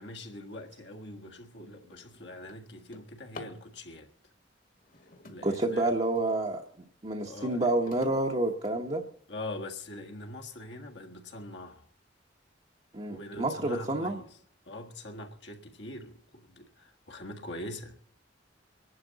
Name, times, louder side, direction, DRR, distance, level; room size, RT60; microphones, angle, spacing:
voice 1, 0.0-4.1 5.3-5.9 7.2-7.7 8.7-8.8 9.3-11.9 13.1-14.3 14.6-18.0, left 1 dB, 65° left, 1.7 m, -43 dB
Drawer open or close, 1.0-1.2 1.7-3.7 4.7-6.3 6.8-9.3 9.9-10.0 10.5-10.6 11.0-11.4, left 2 dB, 50° left, 1.8 m, -51 dB
voice 2, 5.4-6.6 7.0-9.0 12.9-14.2, right 2 dB, 35° right, 1.0 m, -29 dB
25.0 x 11.5 x 4.0 m
head